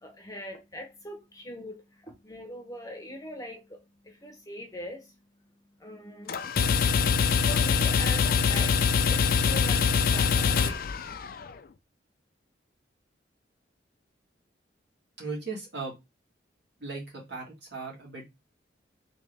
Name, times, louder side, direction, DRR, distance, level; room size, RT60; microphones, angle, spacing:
voice 1, 0.0-5.1 5.8-6.4 7.5-10.7, equal, 20° left, 0.7 m, -41 dB
sound 1, 6.3-11.5, left 6 dB, 50° left, 0.3 m, -24 dB
voice 2, 15.2-15.9 16.8-18.3, right 3 dB, 65° right, 2.0 m, -37 dB
3.5 x 2.8 x 3.3 m
head